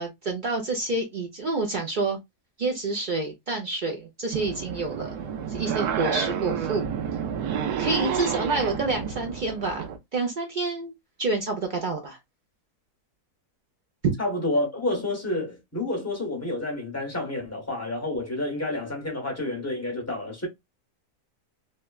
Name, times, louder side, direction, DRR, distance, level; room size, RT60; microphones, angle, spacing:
voice 1, 0.0-2.2 2.6-6.9 7.8-10.9 11.2-12.2, right 3 dB, 55° right, 0.5 m, -28 dB
sound 1, 4.3-10.0, right 8 dB, 85° right, 1.2 m, -30 dB
voice 2, 14.2-20.5, left 2 dB, 10° left, 1.0 m, -29 dB
3.1 x 2.2 x 2.2 m
omnidirectional pair, 1.6 m